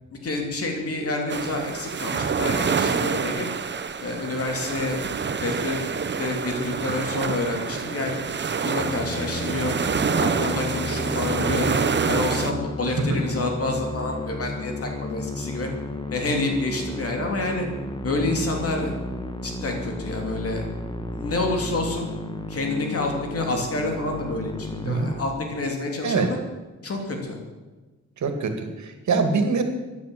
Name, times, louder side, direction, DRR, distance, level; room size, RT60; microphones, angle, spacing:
voice 1, 0.2-3.5 4.0-5.0 5.4-5.8 6.2-8.3 8.6-9.7 10.2-15.7 16.1-17.7 18.0-18.9 19.4-20.7 21.1-22.1 22.5-26.4 26.8-27.4, left 2 dB, 50° left, 2 dB, 3.1 m, -28 dB
sound 1, 1.3-12.5, right 6 dB, 40° right, 0.9 m, -27 dB
Musical instrument, 8.8-25.9, left 1 dB, 15° left, 1.4 m, -33 dB
voice 2, 28.2-29.6, right 4 dB, 75° right, 7 dB, 2.4 m, -24 dB
14.5 x 11.5 x 7.7 m, 1.2 s
wide cardioid pair, 130°, 29 cm